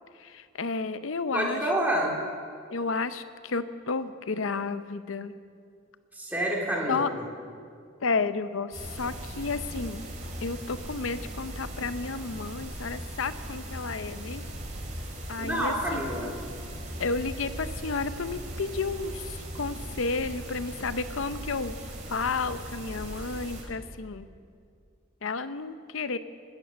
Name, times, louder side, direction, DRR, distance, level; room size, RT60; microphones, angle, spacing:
voice 1, 0.2-1.6 2.7-5.3 6.9-7.1 8.0-10.0 10.4-14.4 15.3-16.0 17.0-21.8 22.1-24.3 25.2-26.2, left 4 dB, 80° left, 12 dB, 0.7 m, -32 dB
voice 2, 1.3-2.2 6.1-7.1 15.4-16.3, right 1 dB, 10° right, -2 dB, 2.7 m, -28 dB
sound 1, 8.7-23.6, right 1 dB, 40° right, 2.8 m, -39 dB
20.0 x 9.0 x 6.9 m, 2.2 s
head